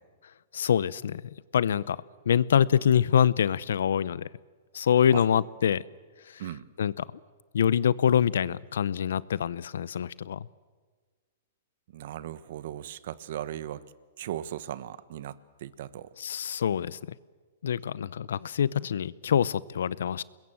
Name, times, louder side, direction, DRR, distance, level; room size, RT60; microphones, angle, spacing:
voice 1, 0.5-4.3 4.7-5.8 6.3-6.4 6.8-7.1 7.5-10.5 16.2-17.0 17.6-20.2, left 8 dB, 80° left, 21 dB, 0.7 m, -25 dB
voice 2, 11.9-13.8 14.2-16.1, right 11 dB, 65° right, 16 dB, 1.1 m, -37 dB
26.0 x 21.5 x 7.6 m, 1.4 s
hypercardioid pair, 135°, 0 cm